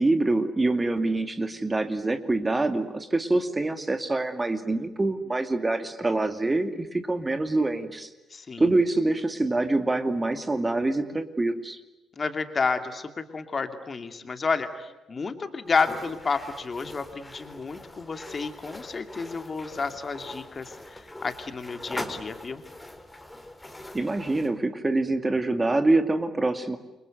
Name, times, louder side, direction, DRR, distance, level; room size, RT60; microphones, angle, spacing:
voice 1, 0.0-8.1 8.6-11.8 23.9-26.8, right 2 dB, 20° right, 8 dB, 2.5 m, -25 dB
voice 2, 8.3-8.7 12.2-22.6, left 4 dB, 35° left, 8 dB, 2.6 m, -30 dB
sound 1, 15.7-24.5, left 1 dB, 10° left, 4.5 m, -42 dB
29.5 x 24.5 x 8.0 m, 1.0 s
figure-of-eight pair, 40°, 0 cm